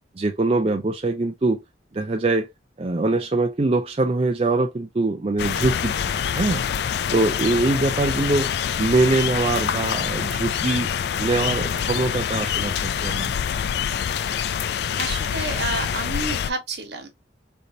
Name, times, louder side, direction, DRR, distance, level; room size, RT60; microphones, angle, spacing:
voice 1, 0.2-1.6 1.9-2.5 2.8-6.6 7.1-8.5 8.8-10.9 11.2-13.3, right 2 dB, 35° right, 0.5 m, -23 dB
sound 1, 5.4-16.5, left 8 dB, 60° left, 0.3 m, -25 dB
voice 2, 15.0-17.1, right 3 dB, 65° right, 1.3 m, -30 dB
3.9 x 3.4 x 2.6 m
head